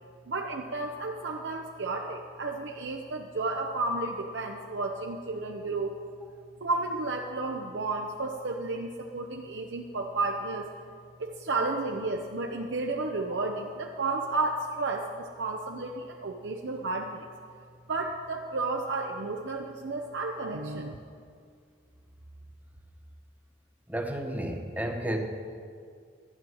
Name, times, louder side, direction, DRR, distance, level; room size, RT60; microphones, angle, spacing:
voice 1, 0.3-6.0 6.6-10.7 11.2-17.3 17.9-21.0, right 3 dB, 90° right, 2 dB, 0.8 m, -32 dB
voice 2, 23.9-25.2, right 1 dB, 10° right, 3 dB, 1.0 m, -32 dB
12.5 x 8.8 x 6.2 m, 2.2 s
head